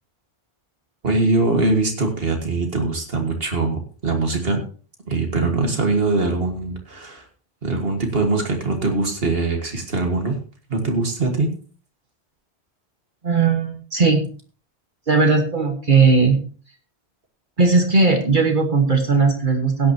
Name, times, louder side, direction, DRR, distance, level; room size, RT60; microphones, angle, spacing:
voice 1, 1.0-4.6 5.1-7.3 7.6-10.4 10.7-11.5, right 3 dB, 65° right, 3 dB, 1.9 m, -22 dB
voice 2, 13.2-14.2 15.1-16.4 17.6-19.9, right 4 dB, 50° right, 4 dB, 1.6 m, -17 dB
16.5 x 9.9 x 2.9 m, 0.40 s
omnidirectional pair, 1.1 m